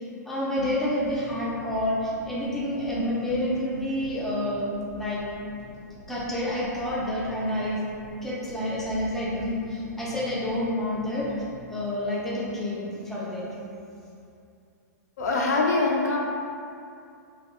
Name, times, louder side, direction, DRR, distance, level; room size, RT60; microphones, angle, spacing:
voice 1, 0.2-5.4 6.1-7.8 8.2-11.3 11.7-13.6, left 1 dB, 5° left, -7 dB, 0.4 m, -29 dB
sound 1, 0.6-12.9, left 1 dB, 50° left, 1.1 m, -47 dB
voice 2, 15.2-16.2, left 3 dB, 70° left, -1 dB, 0.4 m, -23 dB
2.6 x 2.2 x 2.3 m, 2.5 s
hypercardioid pair, 115°, 9 cm